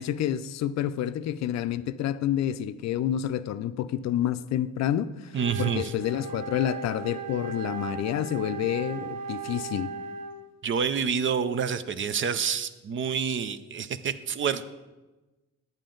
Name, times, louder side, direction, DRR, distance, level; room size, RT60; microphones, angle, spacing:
voice 1, 0.0-5.3 5.6-9.9, left 11 dB, 60° left, 0.5 m, -29 dB
voice 2, 5.3-5.9 10.6-14.6, right 6 dB, 40° right, 0.5 m, -28 dB
Wind instrument woodwind instrument, 5.3-10.5, right 6 dB, 70° right, 0.8 m, -37 dB
10.5 x 8.8 x 3.8 m
cardioid pair, 90°, 31 cm